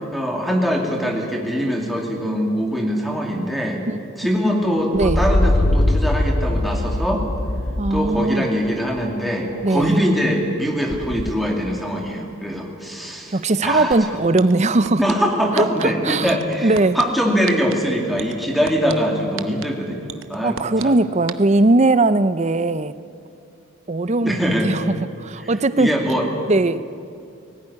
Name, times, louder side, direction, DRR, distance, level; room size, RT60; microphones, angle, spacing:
voice 1, 0.0-3.8 4.2-7.2 7.9-14.3 15.0-20.9 24.2-24.7 25.4-25.5 25.8-26.3, equal, ahead, -1 dB, 2.5 m, -22 dB
sound 1, 4.9-8.3 8.7-9.5 9.8-9.9 10.9-11.3, left 1 dB, 30° left, 0.7 m, -22 dB
voice 2, 7.8-8.5 9.6-10.0 13.3-15.0 15.5-16.3 16.6-17.0 20.4-23.0 23.9-25.9 26.5-26.8, right 2 dB, 35° right, 14 dB, 0.6 m, -19 dB
sound 2, 13.9-14.0 14.4-15.1 15.6-15.8 16.3-17.0 17.5-17.7 18.2-18.9 19.4-19.6 20.1-20.8 21.3-21.4, right 7 dB, 70° right, 0.9 m, -30 dB
19.0 x 17.0 x 9.8 m, 2.5 s
head